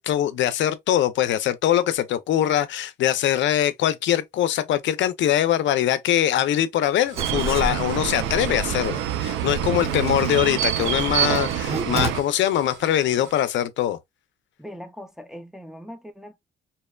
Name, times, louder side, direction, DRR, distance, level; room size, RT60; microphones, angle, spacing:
voice 1, 0.0-14.0, left 11 dB, 70° left, 0.4 m, -22 dB
sound 1, 7.0-13.4, right 3 dB, 65° right, 1.7 m, -45 dB
Writing, 7.2-12.1, right 2 dB, 30° right, 0.8 m, -32 dB
sound 2, 7.2-12.2, right 11 dB, 85° right, 0.4 m, -26 dB
voice 2, 9.8-10.1 14.6-16.4, equal, ahead, 0.4 m, -40 dB
2.8 x 2.1 x 2.2 m
cardioid pair, 90°, 20 cm